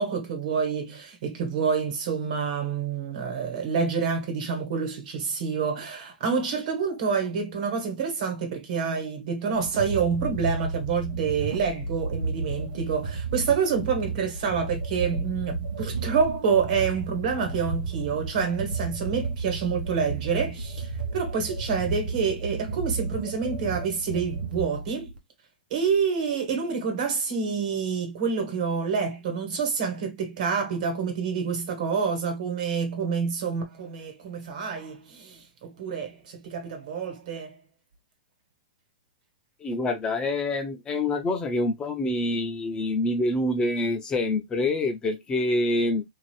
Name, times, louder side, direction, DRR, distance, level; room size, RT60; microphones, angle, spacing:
voice 1, 0.0-25.2 25.7-37.6, right 6 dB, 60° right, 1.4 m, -28 dB
sound 1, 9.5-25.2, right 4 dB, 90° right, 0.9 m, -33 dB
voice 2, 39.6-46.0, left 2 dB, 15° left, 0.6 m, -26 dB
2.7 x 2.6 x 3.1 m
hypercardioid pair, 145°, 5 cm